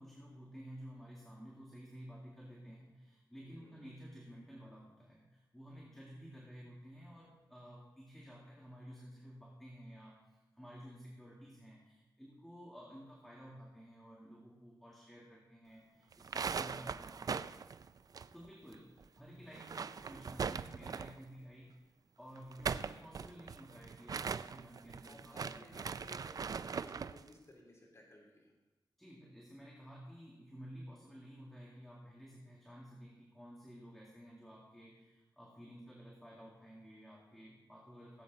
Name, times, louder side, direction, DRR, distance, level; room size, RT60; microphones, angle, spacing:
voice 1, 0.0-17.5 18.3-21.8 22.2-25.9 29.0-38.2, equal, 5° left, -4 dB, 2.0 m, -53 dB
voice 2, 3.4-3.8 23.2-23.3 25.0-28.5, left 1 dB, 35° left, -3 dB, 3.1 m, -59 dB
sound 1, 16.1-18.8 19.0-19.1 19.5-21.3 22.4-27.2, right 6 dB, 50° right, 0.4 m, -40 dB
17.0 x 8.3 x 4.0 m, 1.1 s
wide cardioid pair, 110°, 8 cm